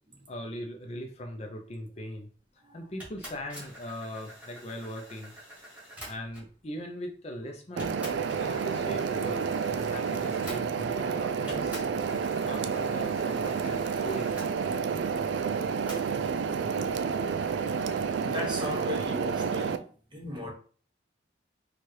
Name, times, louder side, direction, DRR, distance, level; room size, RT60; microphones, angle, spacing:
voice 1, 0.3-2.3 2.7-5.3 6.0-8.0 8.4-11.9 12.4-14.3, equal, 35° left, 0.5 m, -40 dB
sound 1, 3.0-6.6 7.3-7.4 7.8-11.1 11.5-14.5 15.9-16.4, equal, 10° right, 1.4 m, -47 dB
sound 2, 7.8-19.8, right 6 dB, 75° right, 0.3 m, -30 dB
voice 2, 18.2-19.8 20.1-20.5, left 2 dB, 25° right, 1.0 m, -36 dB
4.5 x 2.4 x 3.1 m
head